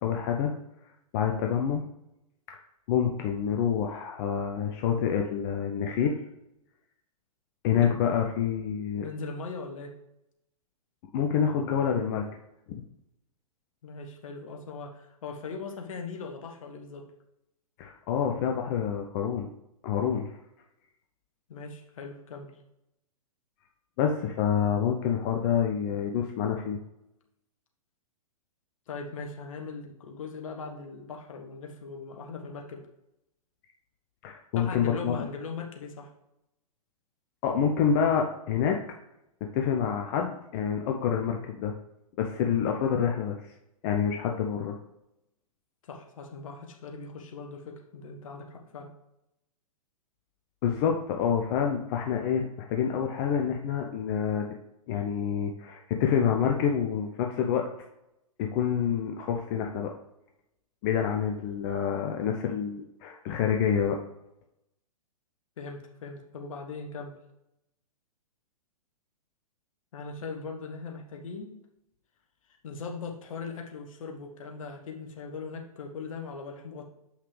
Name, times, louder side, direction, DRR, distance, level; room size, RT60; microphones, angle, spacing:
voice 1, 0.0-0.5 1.1-1.8 2.9-6.2 7.6-9.1 11.1-12.2 12.7-12.8 17.8-19.5 19.8-20.3 24.0-26.8 34.2-35.1 37.4-38.8 39.4-41.7 42.2-43.4 43.8-44.8 50.6-54.5 54.9-57.6 58.4-59.9 60.8-64.0, left 8 dB, 40° left, 2 dB, 0.7 m, -27 dB
voice 2, 9.0-9.9 13.8-17.1 21.5-22.5 28.9-32.9 34.5-36.1 45.8-48.9 65.6-67.2 69.9-71.5 72.6-76.8, left 4 dB, 60° left, 3 dB, 1.3 m, -40 dB
7.6 x 5.7 x 3.3 m, 0.86 s
figure-of-eight pair, 115°, 19 cm